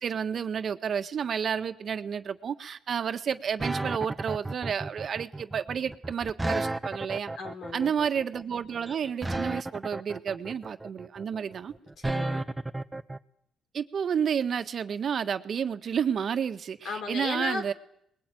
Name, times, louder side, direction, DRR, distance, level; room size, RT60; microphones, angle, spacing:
voice 1, 0.0-7.3 7.7-11.7 13.7-17.7, right 7 dB, 55° right, 8 dB, 1.6 m, -30 dB
sound 1, 3.6-13.2, right 2 dB, 15° right, 1.1 m, -33 dB
voice 2, 7.4-7.9 12.0-12.5 16.8-17.6, left 4 dB, 70° left, 6 dB, 4.3 m, -35 dB
23.5 x 21.0 x 9.3 m, 0.71 s
cardioid pair, 90°, 0 cm